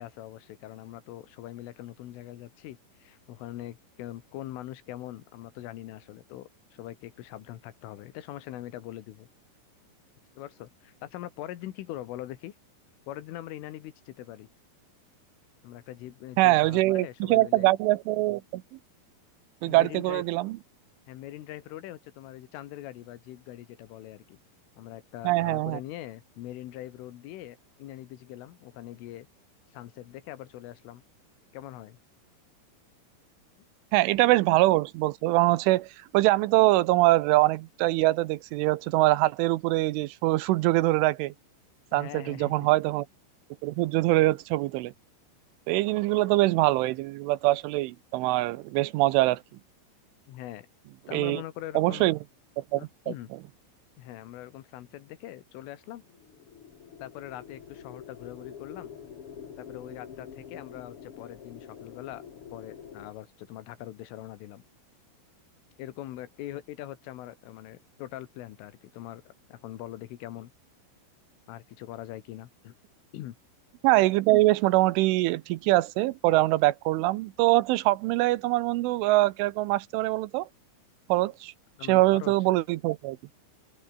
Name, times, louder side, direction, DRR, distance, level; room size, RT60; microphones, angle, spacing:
voice 1, 0.0-9.3 10.4-12.6 13.1-14.5 15.6-17.7 19.6-20.2 21.1-24.4 24.8-29.3 29.7-31.0 31.5-32.0 41.9-42.7 50.3-50.7 51.1-52.1 52.7-53.3 54.0-56.0 57.0-58.9 59.6-62.2 62.5-64.6 65.8-70.5 71.5-72.7 73.1-73.4 81.8-82.3, left 14 dB, 80° left, 4.1 m, -42 dB
voice 2, 16.4-18.6 19.6-20.6 25.2-25.8 33.9-41.3 41.9-43.1 43.6-44.9 45.7-49.4 51.1-51.4 51.7-52.2 52.7-52.9 73.8-80.5 81.1-81.5 81.9-83.2, right 18 dB, 85° right, 3.2 m, -23 dB
sound 1, 56.0-63.1, left 8 dB, 65° left, 1.4 m, -46 dB
open air
omnidirectional pair, 5.7 m